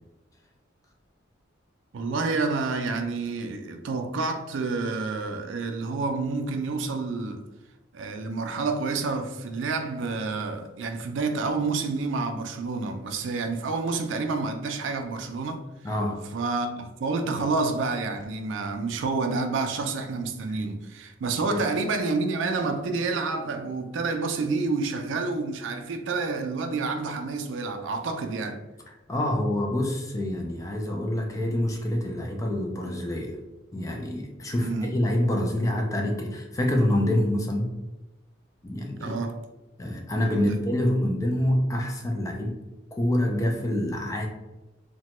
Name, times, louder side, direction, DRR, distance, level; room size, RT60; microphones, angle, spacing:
voice 1, 1.9-7.4 7.9-15.6 16.3-28.6 34.6-34.9 39.0-39.4 40.2-40.6, right 3 dB, 70° right, 0.4 m, -29 dB
voice 2, 15.8-16.3 20.5-20.6 21.5-21.6 29.1-33.4 33.7-37.8 38.6-39.2 39.8-42.6 42.9-44.3, left 1 dB, 15° left, 0.3 m, -26 dB
2.9 x 2.1 x 2.9 m
head